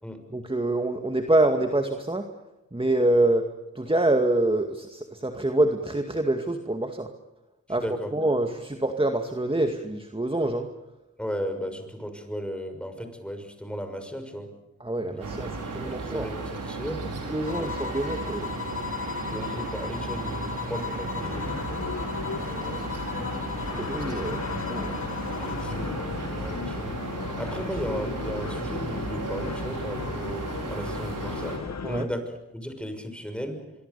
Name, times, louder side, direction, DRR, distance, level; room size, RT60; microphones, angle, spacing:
voice 1, 0.3-2.3 2.7-3.5 3.8-7.1 7.7-7.8 8.1-10.7 14.8-16.3 17.2-18.5 22.4-22.5 23.8-24.4 24.7-24.9 31.8-32.1, right 1 dB, 15° right, 5 dB, 2.2 m, -26 dB
voice 2, 7.7-8.1 11.2-14.5 15.0-15.3 15.6-17.0 17.5-18.1 19.3-21.6 22.4-23.0 24.8-26.0 26.3-27.0 27.4-31.6 31.9-33.6, equal, 5° left, 7 dB, 6.3 m, -36 dB
sound 1, 15.2-31.6, right 3 dB, 90° right, 5.1 m, -35 dB
sound 2, 17.5-25.8, left 9 dB, 45° left, 1.6 m, -37 dB
sound 3, 21.2-32.1, left 5 dB, 60° left, 1.2 m, -36 dB
25.5 x 23.5 x 7.0 m, 0.99 s
cardioid pair, 50°, 31 cm